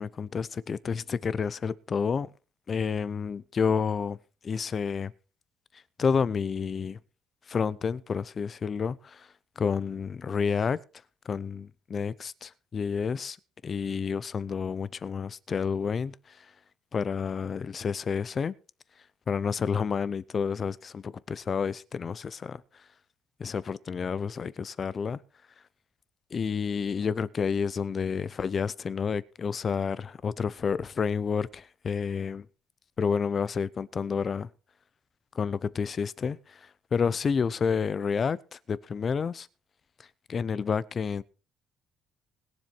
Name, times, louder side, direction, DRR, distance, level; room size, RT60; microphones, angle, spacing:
voice 1, 0.0-2.3 2.7-4.2 4.4-5.1 6.0-7.0 7.5-9.3 9.6-10.8 11.2-13.4 13.6-16.5 16.9-18.5 19.3-22.6 23.4-25.2 26.3-32.5 33.0-34.5 35.3-39.5 40.3-41.2, left 6 dB, 30° left, 0.6 m, -30 dB
20.5 x 7.5 x 4.4 m
cardioid pair, 170°, 0 cm